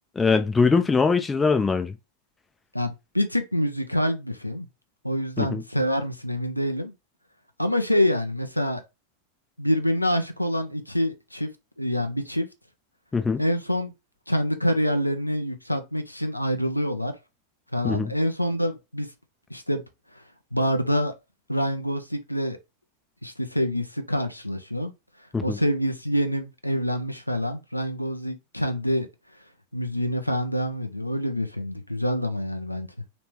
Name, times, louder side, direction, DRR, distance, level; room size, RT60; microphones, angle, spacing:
voice 1, 0.2-1.9 5.4-5.6 13.1-13.4 17.8-18.1 25.3-25.6, left 4 dB, 15° left, 0.5 m, -22 dB
voice 2, 2.7-4.7 5.0-6.9 7.6-8.8 9.6-11.5 11.8-12.5 13.4-13.9 14.3-17.1 17.7-19.1 19.5-19.8 20.5-21.1 21.5-22.6 23.2-24.9 25.4-29.1 29.7-32.9, equal, 90° left, 0.5 m, -26 dB
3.4 x 3.0 x 3.1 m
figure-of-eight pair, 90°, 0 cm